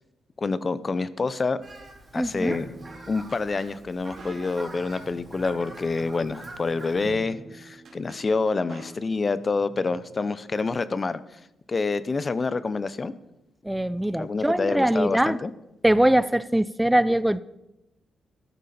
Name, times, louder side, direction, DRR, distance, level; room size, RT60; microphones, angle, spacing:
voice 1, 0.4-1.6 2.1-2.7 3.1-11.2 11.7-13.1 14.1-15.5, left 4 dB, 35° left, 15 dB, 0.8 m, -27 dB
Fowl, 1.6-7.1, right 2 dB, 35° right, 3.5 m, -45 dB
sound 1, 2.1-10.2, right 3 dB, 65° right, 2.8 m, -46 dB
voice 2, 2.2-2.6 13.7-15.4 15.8-17.4, right 1 dB, 5° right, 17 dB, 0.4 m, -22 dB
13.5 x 12.0 x 4.3 m, 0.92 s
cardioid pair, 80°, 0 cm